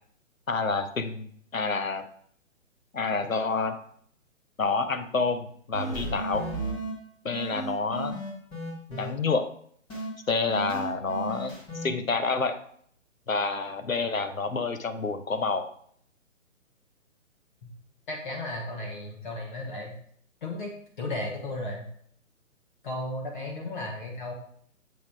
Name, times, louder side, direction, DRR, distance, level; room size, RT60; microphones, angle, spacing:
voice 1, 0.5-2.0 2.9-3.8 4.6-6.5 7.2-8.2 8.9-9.5 10.3-12.6 13.3-15.7, left 4 dB, 75° left, 9 dB, 1.0 m, -28 dB
sound 1, 5.7-6.9 7.3-9.1 9.9-10.1 10.5-11.9, right 1 dB, 10° left, 1.2 m, -34 dB
voice 2, 18.1-19.9 20.4-21.8 22.8-24.3, left 2 dB, 35° left, -1 dB, 1.3 m, -35 dB
7.2 x 4.1 x 4.7 m, 0.63 s
figure-of-eight pair, 135°, 40 cm